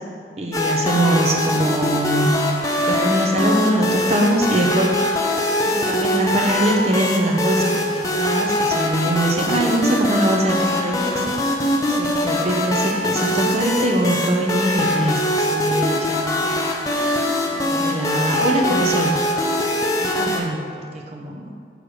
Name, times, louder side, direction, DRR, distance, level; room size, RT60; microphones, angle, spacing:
voice 1, 0.4-2.3 2.9-4.9 5.6-11.2 11.9-16.8 17.4-19.2 20.0-20.7 20.9-21.5, right 1 dB, 35° right, 1 dB, 0.7 m, -22 dB
sound 1, 0.5-20.4, left 1 dB, 20° left, 0.5 m, -22 dB
6.4 x 3.3 x 6.0 m, 2.2 s
head